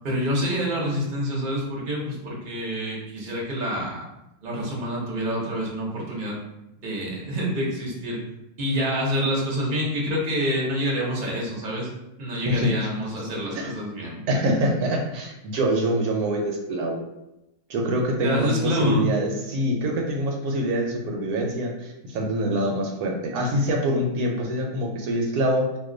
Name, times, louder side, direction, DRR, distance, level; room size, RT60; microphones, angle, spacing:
voice 1, 0.0-4.0 4.4-6.4 6.8-8.2 8.6-11.9 12.2-14.2 18.2-19.1, equal, 45° right, -2 dB, 0.7 m, -27 dB
voice 2, 14.3-17.0 17.7-25.8, right 1 dB, 75° right, 1 dB, 1.0 m, -25 dB
2.5 x 2.3 x 3.7 m, 0.90 s
omnidirectional pair, 1.6 m